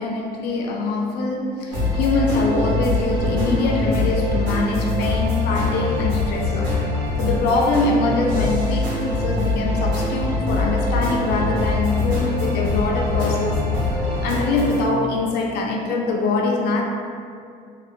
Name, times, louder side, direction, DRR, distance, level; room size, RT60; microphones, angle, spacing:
voice 1, 0.0-6.8 7.2-13.6 14.2-16.8, left 3 dB, 75° left, 1 dB, 0.4 m, -23 dB
sound 1, 1.7-14.8, left 2 dB, 80° right, 1.3 m, -23 dB
2.7 x 2.3 x 2.4 m, 2.4 s
cardioid pair, 110°, 17 cm